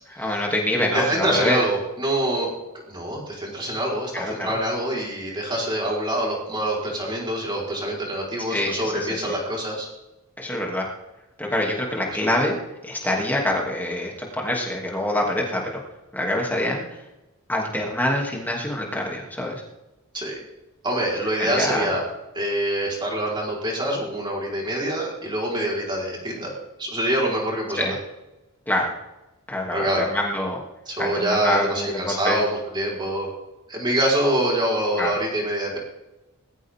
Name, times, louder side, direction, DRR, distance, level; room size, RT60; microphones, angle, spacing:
voice 1, 0.2-1.6 4.1-4.6 8.5-9.3 10.4-10.9 11.4-12.6 12.8-15.8 16.1-17.0 17.5-19.6 21.4-21.9 27.7-27.9 28.7-28.9 29.5-30.6 31.0-32.4 35.0-35.1, left 1 dB, 10° left, -1 dB, 3.0 m, -25 dB
voice 2, 0.9-2.5 2.9-9.9 20.1-20.4 20.8-22.0 22.3-26.5 26.8-28.0 29.7-30.1 30.9-33.3 33.7-35.8, right 1 dB, 20° right, -3 dB, 4.8 m, -25 dB
20.5 x 14.5 x 3.8 m, 0.99 s
head